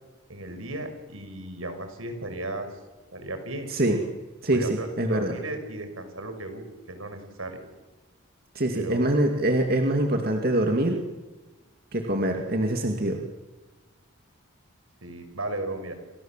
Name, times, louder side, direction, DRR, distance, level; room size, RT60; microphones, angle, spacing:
voice 1, 0.3-2.8 3.1-3.7 4.5-7.6 8.7-9.1 15.0-15.9, right 2 dB, 80° right, 7 dB, 5.8 m, -35 dB
voice 2, 4.4-5.4 8.5-11.0 11.9-13.2, right 1 dB, 45° right, 3 dB, 2.3 m, -24 dB
28.5 x 27.5 x 7.5 m, 1.2 s
head